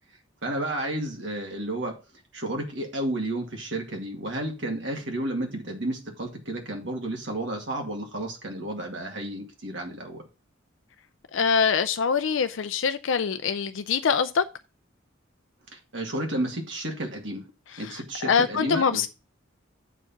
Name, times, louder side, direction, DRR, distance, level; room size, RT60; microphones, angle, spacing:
voice 1, 0.4-2.0 2.3-10.2 15.7-17.5 17.8-19.1, right 1 dB, 65° right, 2.2 m, -32 dB
voice 2, 11.3-14.4 18.3-19.1, left 6 dB, 75° left, 0.4 m, -24 dB
8.1 x 4.5 x 5.7 m
head